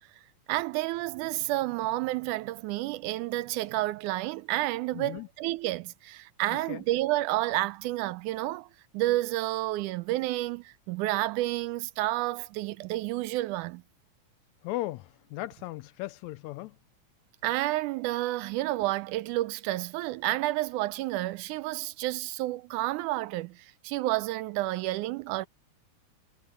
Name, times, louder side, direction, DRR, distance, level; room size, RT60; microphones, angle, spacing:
voice 1, 0.5-8.7 8.9-13.8 17.4-25.5, right 17 dB, 85° right, 2.1 m, -30 dB
voice 2, 4.9-5.3 6.7-6.8 14.6-16.8, left 17 dB, 80° left, 1.8 m, -37 dB
omnidirectional pair, 3.5 m